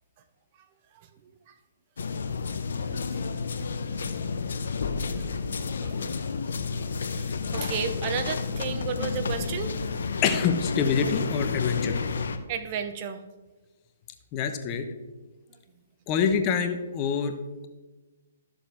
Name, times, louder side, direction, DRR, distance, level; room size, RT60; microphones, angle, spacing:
sound 1, 2.0-12.4, left 5 dB, 65° left, 0.8 m, -31 dB
voice 1, 7.1-9.7 12.5-13.2, right 7 dB, 35° right, 9 dB, 0.8 m, -33 dB
voice 2, 10.2-12.0 14.3-14.8 16.1-17.3, left 6 dB, 30° left, 7 dB, 0.9 m, -26 dB
13.0 x 7.1 x 3.5 m, 1.2 s
figure-of-eight pair, 130°, 0 cm